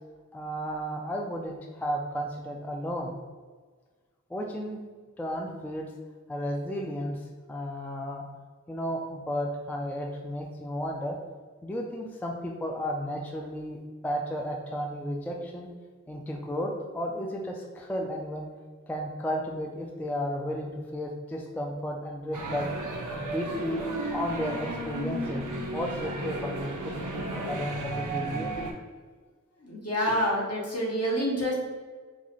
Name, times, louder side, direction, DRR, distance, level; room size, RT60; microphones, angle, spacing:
voice 1, 0.3-3.1 4.3-4.8 5.2-5.9 6.3-8.2 8.7-11.2 11.6-13.8 14.0-15.7 16.1-18.5 18.9-22.7 23.1-23.8 24.1-25.5 25.7-28.5, equal, 5° left, 1 dB, 0.3 m, -33 dB
sound 1, 22.3-28.7, right 2 dB, 75° right, 0.6 m, -34 dB
voice 2, 29.6-31.5, equal, 50° left, -4 dB, 1.0 m, -28 dB
4.0 x 2.4 x 3.0 m, 1.5 s
wide cardioid pair, 55°, 31 cm